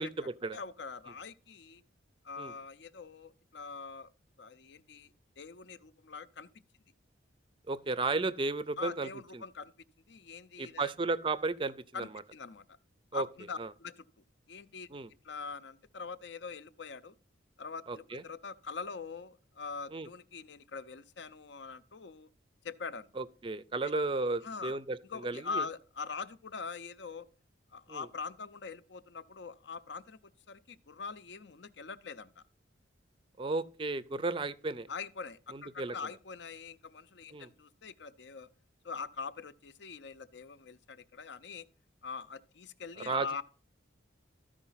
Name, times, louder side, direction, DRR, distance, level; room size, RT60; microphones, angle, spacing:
voice 1, 0.0-1.8 2.2-4.1 4.4-6.5 8.8-9.7 10.1-10.9 11.9-12.8 13.1-14.0 14.5-14.9 15.2-17.1 17.6-22.3 22.6-23.1 23.8-23.9 24.4-24.8 25.0-27.3 27.7-30.2 30.5-32.4 34.9-38.5 38.8-41.7 42.0-43.4, left 5 dB, 65° left, 0.6 m, -43 dB
voice 2, 7.7-9.1 10.6-11.7 13.1-13.3 13.6-13.7 14.9-15.1 17.9-18.2 19.9-20.1 23.2-25.6 27.9-28.1 33.4-34.9 35.5-35.9 37.3-37.5 43.1-43.3, right 3 dB, 25° right, 0.4 m, -33 dB
13.0 x 5.0 x 5.6 m
head